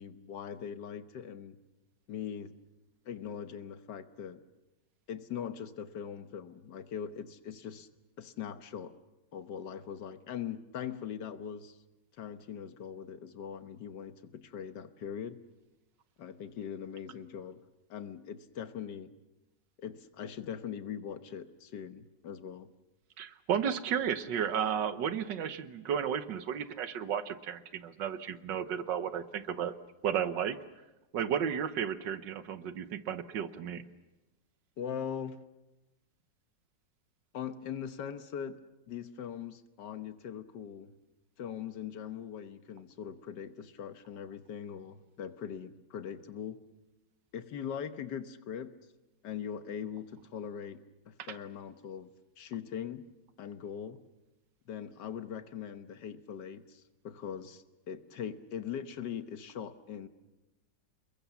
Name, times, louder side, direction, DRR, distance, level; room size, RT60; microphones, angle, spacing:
voice 1, 0.0-1.6 2.1-2.5 3.1-4.4 5.1-7.9 8.2-9.0 9.3-11.8 12.2-15.4 16.2-17.6 17.9-19.1 19.8-22.7 34.8-35.4 37.3-38.6 38.9-40.9 41.4-46.6 47.3-48.8 49.2-53.1 53.4-54.0 54.7-60.1, left 8 dB, 75° left, 10 dB, 1.7 m, -41 dB
voice 2, 23.2-29.7 30.0-30.6 31.1-33.9 51.2-51.4, right 8 dB, 90° right, 11 dB, 1.7 m, -33 dB
29.0 x 21.5 x 7.1 m, 1.1 s
omnidirectional pair, 1.9 m